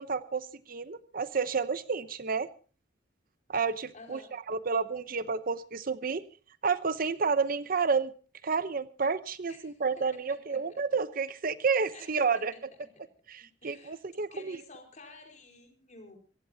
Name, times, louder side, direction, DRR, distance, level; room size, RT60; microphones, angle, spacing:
voice 1, 0.0-2.5 3.5-4.2 4.5-6.2 6.6-8.1 8.4-12.5 13.3-14.6, right 5 dB, 50° right, 14 dB, 0.7 m, -30 dB
voice 2, 3.9-4.3 9.5-10.8 11.9-12.6 13.4-14.0 14.3-16.2, left 2 dB, 40° left, 2 dB, 4.7 m, -52 dB
25.0 x 16.0 x 2.7 m, 0.37 s
head